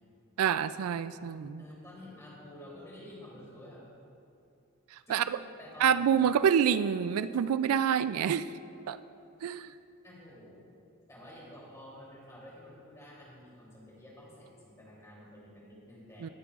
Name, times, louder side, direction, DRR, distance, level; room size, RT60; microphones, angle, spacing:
voice 1, 0.4-1.6 5.1-5.2 5.8-8.4 8.9-9.0 9.4-9.7 16.2-16.3, right 8 dB, 85° right, 14 dB, 0.3 m, -27 dB
voice 2, 1.6-3.8 5.1-6.0 10.0-10.6 11.1-16.3, left 1 dB, 15° left, -6 dB, 3.0 m, -50 dB
19.5 x 9.9 x 2.4 m, 2.6 s
head